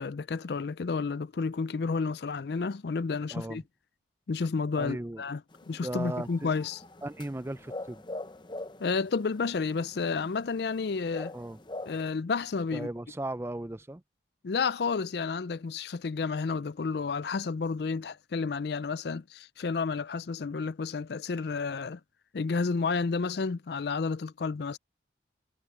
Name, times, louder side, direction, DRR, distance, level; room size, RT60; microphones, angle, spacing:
voice 1, 0.0-3.6 4.3-5.4 5.7-6.8 8.8-11.3 11.9-12.9 14.4-22.0 22.3-24.8, left 4 dB, 60° left, 0.4 m, -31 dB
voice 2, 3.3-3.6 4.8-5.2 5.7-6.5 7.0-8.0 11.3-11.6 12.7-14.0, right 1 dB, 15° right, 0.4 m, -36 dB
sound 1, 5.5-12.1, left 2 dB, 25° left, 0.7 m, -44 dB
head